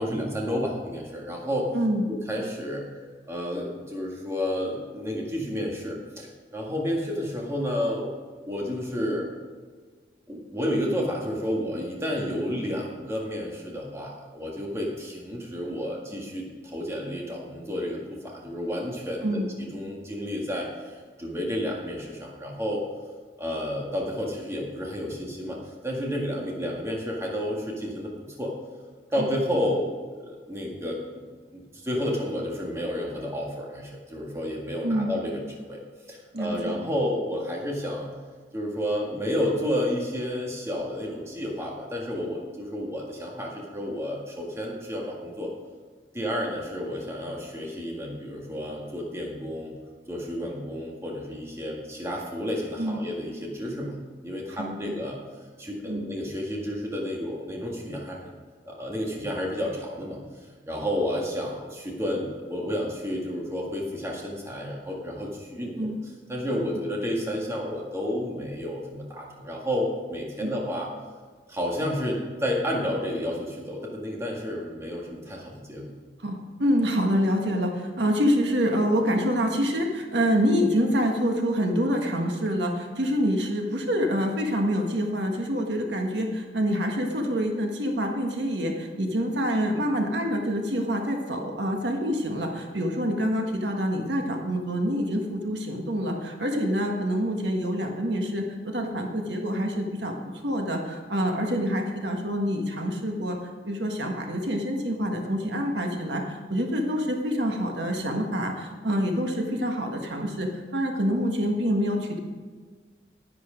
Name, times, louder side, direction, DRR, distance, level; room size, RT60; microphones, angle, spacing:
voice 1, 0.0-1.7 2.1-2.8 3.3-9.3 10.3-22.8 23.4-25.6 25.8-28.5 29.1-31.2 31.5-35.8 36.1-38.1 38.5-45.5 46.1-49.7 50.1-54.0 54.2-55.2 55.6-58.3 58.7-60.2 60.7-65.9 66.3-70.9 71.5-76.0, equal, 15° right, -2 dB, 1.9 m, -31 dB
voice 2, 1.7-2.1 19.2-19.5 26.4-26.5 29.2-29.3 34.8-35.1 36.3-36.8 52.8-53.1 54.6-54.9 55.9-56.1 65.8-66.0 70.4-70.5 76.2-103.4 103.6-112.2, equal, 80° right, 2 dB, 1.6 m, -26 dB
10.5 x 10.5 x 5.1 m, 1.5 s
head